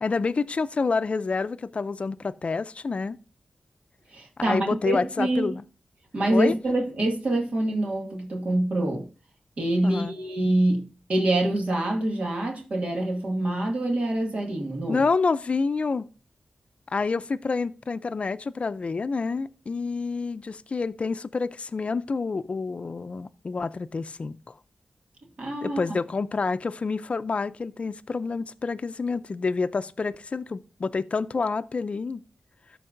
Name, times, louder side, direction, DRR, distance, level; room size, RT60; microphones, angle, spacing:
voice 1, 0.0-3.2 4.5-5.6 6.3-6.5 9.8-10.1 14.9-16.1 16.9-24.5 25.6-32.2, left 4 dB, 55° left, 0.5 m, -28 dB
voice 2, 4.1-5.5 6.1-9.1 9.6-15.0 25.4-25.8, right 1 dB, 60° right, 2.1 m, -25 dB
13.0 x 4.6 x 2.6 m
cardioid pair, 60°, 3 cm